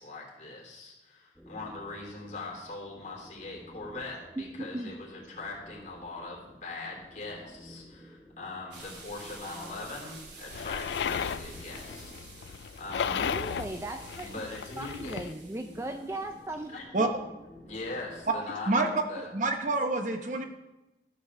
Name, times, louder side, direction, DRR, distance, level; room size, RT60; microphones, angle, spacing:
voice 1, 0.0-13.5 14.2-15.2 16.7-16.9 17.7-19.3, left 3 dB, 40° left, -2 dB, 3.0 m, -41 dB
sound 1, 1.3-18.5, equal, 5° left, 0.9 m, -53 dB
voice 2, 4.4-4.9 13.1-14.4 14.8-16.7, right 1 dB, 15° right, 5 dB, 0.4 m, -37 dB
sound 2, 8.7-16.7, right 2 dB, 80° right, 2.7 m, -49 dB
sound 3, 10.5-15.3, left 7 dB, 75° left, 0.3 m, -35 dB
voice 3, 19.1-20.4, right 3 dB, 45° right, 5 dB, 0.9 m, -27 dB
13.0 x 5.2 x 6.7 m, 0.99 s
head